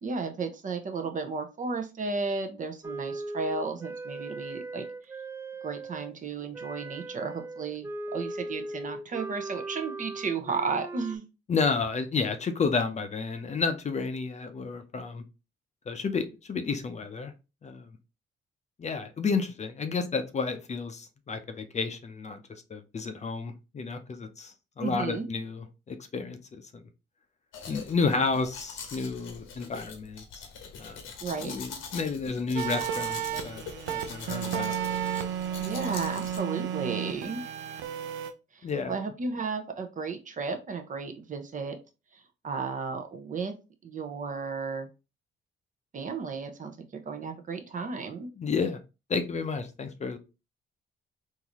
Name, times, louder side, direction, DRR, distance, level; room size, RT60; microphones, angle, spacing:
voice 1, 0.0-4.9 5.6-11.2 24.8-25.2 31.2-31.6 35.6-37.4 38.5-41.8 42.1-43.5 43.8-44.9 45.9-46.7 47.1-48.3, right 4 dB, 40° right, 0.7 m, -34 dB
Wind instrument woodwind instrument, 2.8-6.1 6.5-11.2, right 2 dB, 15° right, 0.4 m, -38 dB
voice 2, 11.5-15.2 15.9-17.3 17.6-17.9 18.8-22.4 22.7-26.8 27.7-30.5 30.8-31.0 31.4-34.7 38.6-38.9 48.4-48.8 49.1-50.2, left 4 dB, 35° left, 0.6 m, -31 dB
Domestic sounds home sounds, 27.5-36.4, left 5 dB, 90° left, 0.9 m, -43 dB
sound 1, 32.5-38.3, right 9 dB, 80° right, 0.6 m, -33 dB
3.8 x 2.6 x 2.9 m
cardioid pair, 90°, 20 cm